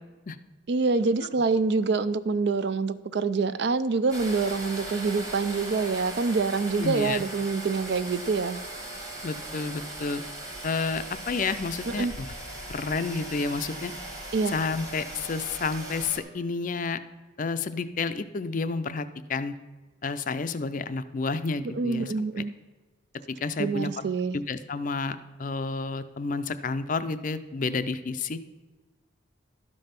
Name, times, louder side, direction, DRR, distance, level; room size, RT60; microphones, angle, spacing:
voice 1, 0.7-8.6 11.9-12.1 14.3-14.6 21.7-22.5 23.6-24.4, right 4 dB, 55° right, 14 dB, 0.4 m, -26 dB
sound 1, 4.1-16.2, right 1 dB, 15° right, 1.2 m, -39 dB
voice 2, 6.8-7.2 9.2-10.2 10.6-12.3 12.7-13.9 14.5-17.0 17.4-19.5 20.0-22.1 23.3-23.9 24.3-28.4, left 4 dB, 40° left, 12 dB, 0.4 m, -30 dB
12.5 x 5.4 x 5.8 m, 1.3 s
head